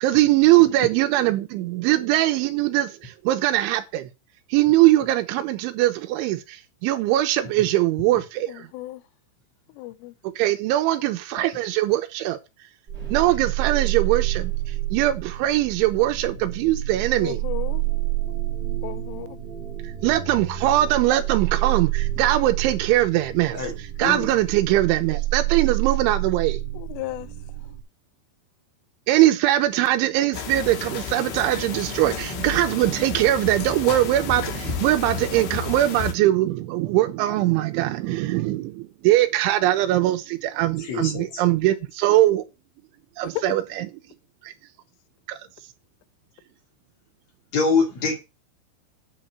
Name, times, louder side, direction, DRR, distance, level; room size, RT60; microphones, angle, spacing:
voice 1, 0.0-4.1 4.5-8.7 10.4-12.4 13.1-14.5 14.9-17.4 20.0-23.6 24.0-26.6 29.1-42.4 43.2-43.9 45.3-45.4, right 15 dB, 80° right, 3.1 m, -21 dB
voice 2, 8.5-9.0 9.8-10.1 17.2-17.8 18.8-19.4 26.8-27.3 43.4-43.5, left 18 dB, 90° left, 3.3 m, -34 dB
sound 1, 12.9-27.8, right 16 dB, 25° right, 2.7 m, -28 dB
sound 2, 30.3-36.1, left 6 dB, 70° left, 3.2 m, -32 dB
voice 3, 40.8-41.2 47.5-48.2, left 4 dB, 45° left, 2.7 m, -24 dB
9.2 x 4.7 x 7.4 m
omnidirectional pair, 5.6 m